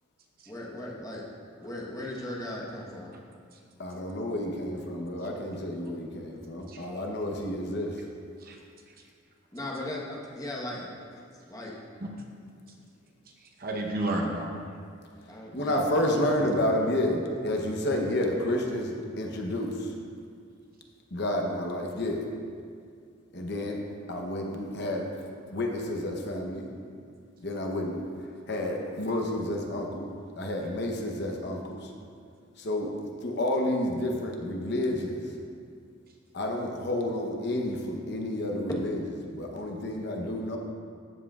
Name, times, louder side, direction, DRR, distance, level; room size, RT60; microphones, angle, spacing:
voice 1, 0.5-1.2 1.6-3.1 9.5-10.9 11.5-11.7 15.3-16.5, left 1 dB, 15° left, -3 dB, 1.1 m, -38 dB
voice 2, 3.8-8.0 15.5-19.9 21.1-22.3 23.3-23.8 24.1-25.1 25.5-26.7 27.4-28.0 28.5-31.9 32.6-32.9 33.2-35.3 36.3-39.0 39.3-40.6, left 1 dB, 55° left, 1 dB, 0.9 m, -30 dB
voice 3, 13.3-14.7, right 1 dB, 45° right, 1 dB, 0.9 m, -33 dB
13.5 x 7.4 x 2.4 m, 2.2 s
head